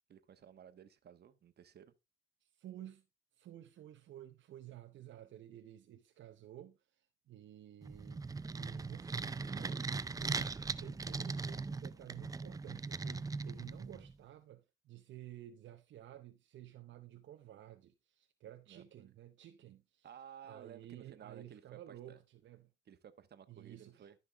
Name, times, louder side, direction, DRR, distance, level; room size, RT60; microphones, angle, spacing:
voice 1, 0.1-1.9 18.7-19.1 20.0-22.2 22.9-24.2, right 9 dB, 55° right, 1.2 m, -55 dB
voice 2, 2.4-3.0 3.3-20.1 20.4-22.7 23.5-24.1, right 12 dB, 70° right, 0.8 m, -53 dB
sound 1, 7.8-14.1, right 4 dB, 20° right, 0.4 m, -40 dB
12.0 x 5.6 x 3.4 m
cardioid pair, 90°, 20 cm